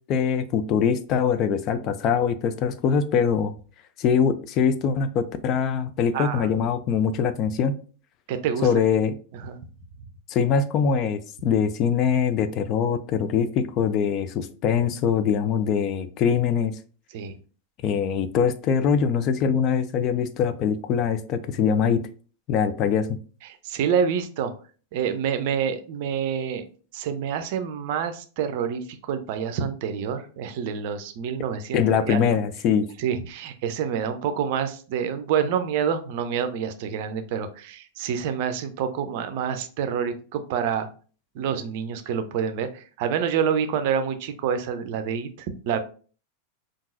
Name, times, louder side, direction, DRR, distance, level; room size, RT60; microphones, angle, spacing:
voice 1, 0.1-3.5 4.0-7.7 8.6-9.1 10.3-16.8 17.8-22.1 22.5-23.2 31.7-32.9, left 7 dB, 35° left, 11 dB, 0.4 m, -23 dB
voice 2, 6.1-6.5 8.3-8.7 8.9-9.0 9.3-9.6 17.1-17.3 23.4-24.5 24.9-26.7 26.9-31.8 32.1-32.3 33.0-40.9 41.3-45.8, right 7 dB, 50° right, 9 dB, 0.5 m, -27 dB
5.3 x 2.5 x 2.5 m, 0.39 s
figure-of-eight pair, 90°, 0 cm